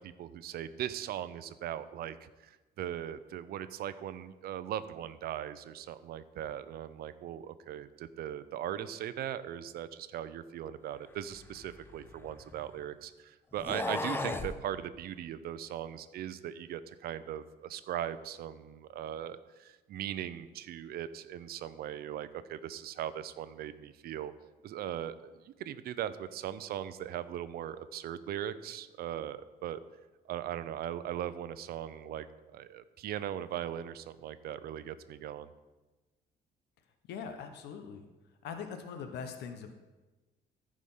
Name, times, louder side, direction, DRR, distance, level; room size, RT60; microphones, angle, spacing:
voice 1, 0.0-24.3 24.6-29.8 30.3-32.3 32.5-35.5, right 10 dB, 65° right, 13 dB, 0.6 m, -39 dB
sound 1, 11.3-12.8 13.5-14.6, left 2 dB, 15° left, 0.5 m, -37 dB
voice 2, 37.1-38.1 38.4-39.7, left 6 dB, 90° left, 7 dB, 0.9 m, -41 dB
14.0 x 5.0 x 5.5 m, 1.2 s
cardioid pair, 155°, 17 cm